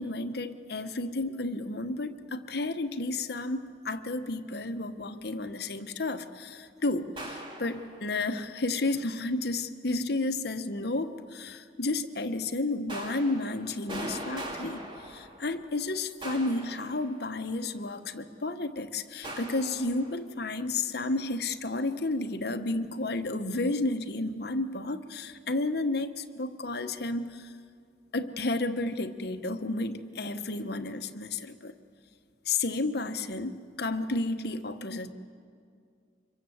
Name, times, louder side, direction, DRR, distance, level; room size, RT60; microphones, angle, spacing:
voice 1, 0.0-27.5 28.1-31.7 32.4-35.1, left 2 dB, 55° left, 7 dB, 1.1 m, -32 dB
sound 1, 7.2-8.3 12.9-15.7 16.2-17.5 19.2-20.1, right 1 dB, 25° right, 2.5 m, -41 dB
25.0 x 22.5 x 7.9 m, 2.2 s
head